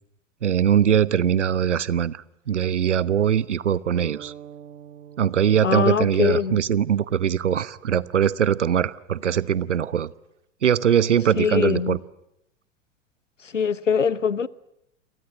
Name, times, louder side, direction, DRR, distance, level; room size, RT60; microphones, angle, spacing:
voice 1, 0.4-4.3 5.2-10.1 10.6-12.0, right 9 dB, 70° right, 1.0 m, -21 dB
sound 1, 3.9-7.9, right 9 dB, 50° right, 3.3 m, -45 dB
voice 2, 5.6-6.6 11.4-12.0 13.4-14.5, left 6 dB, 80° left, 1.0 m, -22 dB
29.0 x 23.0 x 7.9 m
figure-of-eight pair, 95°, 37 cm